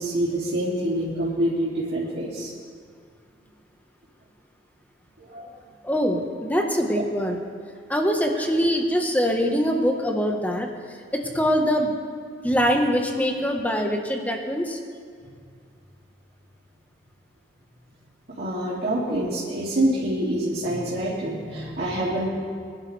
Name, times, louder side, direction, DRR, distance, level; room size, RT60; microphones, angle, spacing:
voice 1, 0.0-2.5 5.3-5.5 18.4-22.3, right 1 dB, 65° right, -9 dB, 2.8 m, -26 dB
voice 2, 5.8-7.4 7.9-10.7 11.1-11.9 12.4-14.8, equal, 10° left, 2 dB, 1.4 m, -23 dB
24.0 x 11.5 x 3.5 m, 2.2 s
head